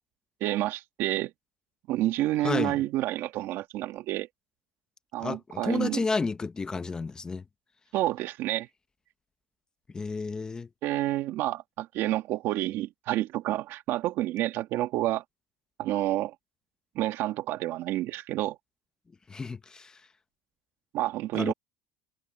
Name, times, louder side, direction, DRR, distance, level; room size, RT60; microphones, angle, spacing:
voice 1, 0.4-1.3 1.9-4.3 5.1-6.0 7.9-8.7 10.8-15.2 15.8-16.3 16.9-18.6 20.9-21.5, right 15 dB, 55° right, 2.0 m, -29 dB
voice 2, 2.4-2.8 5.2-7.4 9.9-10.7 19.3-20.0 21.3-21.5, left 4 dB, 15° left, 1.0 m, -31 dB
cardioid pair, 145°, 5 cm